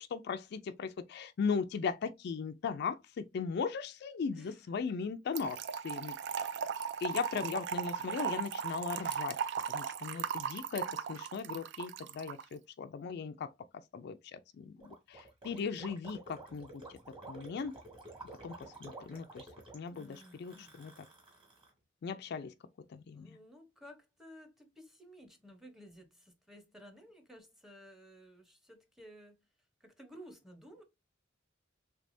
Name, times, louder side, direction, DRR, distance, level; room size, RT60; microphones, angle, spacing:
voice 1, 0.0-5.6 5.8-6.1 7.0-9.4 9.7-13.5 13.9-16.8 17.3-17.7 18.4-18.5 18.8-19.5 19.7-21.0 22.0-22.5 22.9-23.4, left 5 dB, 60° left, 0.3 m, -38 dB
voice 2, 4.3-4.7 19.9-20.8 23.1-29.4 29.8-30.8, equal, ahead, 0.8 m, -55 dB
Trickle dribble / Fill (with liquid), 5.4-12.4, right 7 dB, 65° right, 0.4 m, -37 dB
Gurgling, 14.8-21.7, right 2 dB, 25° right, 1.7 m, -51 dB
3.4 x 3.3 x 2.5 m
head